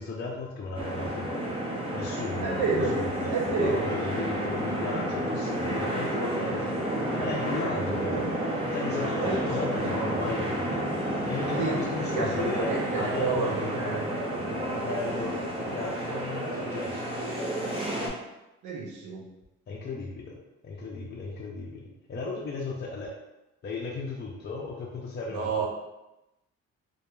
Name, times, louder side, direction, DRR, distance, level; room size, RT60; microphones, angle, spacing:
voice 1, 0.0-1.5 1.9-8.3 8.7-10.9 11.3-17.1 19.7-20.3 20.6-21.8 22.1-23.1 23.6-25.7, left 3 dB, 35° left, -3 dB, 0.4 m, -35 dB
sound 1, 0.7-18.1, right 1 dB, 20° right, 0.6 m, -31 dB
voice 2, 2.4-3.0 3.3-3.9 7.9-8.3 9.2-10.1 11.6-11.8 12.1-14.5 18.6-19.2 25.3-25.7, right 4 dB, 75° right, -2 dB, 0.7 m, -30 dB
2.8 x 2.3 x 2.2 m, 0.94 s
cardioid pair, 90°, 30 cm